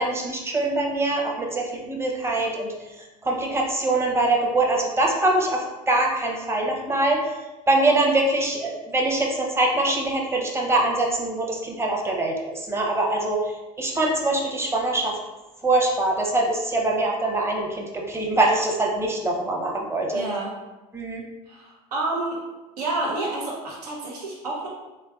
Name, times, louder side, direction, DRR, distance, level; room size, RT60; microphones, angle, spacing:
voice 1, 0.0-2.7 3.2-7.3 7.7-15.2 15.6-20.2 20.9-21.2, right 2 dB, 15° right, 0 dB, 0.7 m, -23 dB
voice 2, 20.1-20.5 21.5-22.4 22.8-24.7, right 2 dB, 90° right, -3 dB, 0.8 m, -29 dB
3.4 x 3.2 x 2.3 m, 1.1 s
hypercardioid pair, 80°, 20 cm